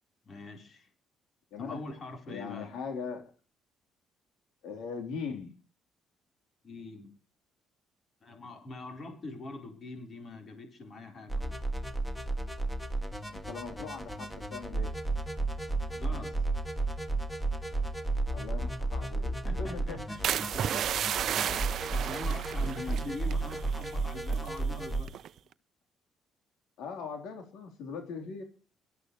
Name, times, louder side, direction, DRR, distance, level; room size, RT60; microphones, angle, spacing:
voice 1, 0.2-0.9 1.6-2.7 6.6-7.1 8.2-11.6 15.9-16.5 19.4-20.2 21.3-25.2, left 2 dB, 35° left, 4 dB, 4.1 m, -43 dB
voice 2, 1.5-1.8 2.3-3.2 4.6-5.6 13.3-15.0 18.3-20.0 22.6-23.1 26.8-28.4, left 5 dB, 85° left, 4 dB, 3.6 m, -40 dB
sound 1, 11.3-25.0, right 2 dB, 5° left, 1.7 m, -33 dB
sound 2, 20.2-24.0 24.2-24.6 25.1-25.4, right 10 dB, 55° right, 0.7 m, -33 dB
23.5 x 13.0 x 3.2 m, 0.38 s
cardioid pair, 145°, 0 cm